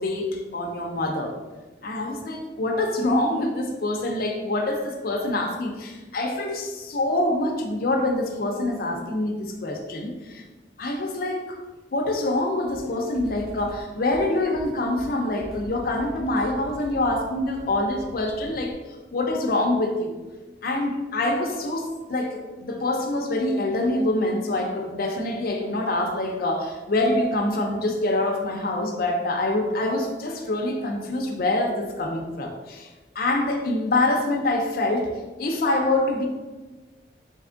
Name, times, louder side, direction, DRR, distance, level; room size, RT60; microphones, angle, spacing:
voice 1, 0.0-1.3 1.8-10.4 10.8-11.6 11.9-18.8 19.1-20.1 20.6-32.9 33.2-36.3, left 2 dB, 55° left, 2 dB, 0.5 m, -25 dB
sound 1, 12.6-18.7, equal, 5° right, 0.6 m, -43 dB
3.4 x 2.9 x 3.8 m, 1.2 s
head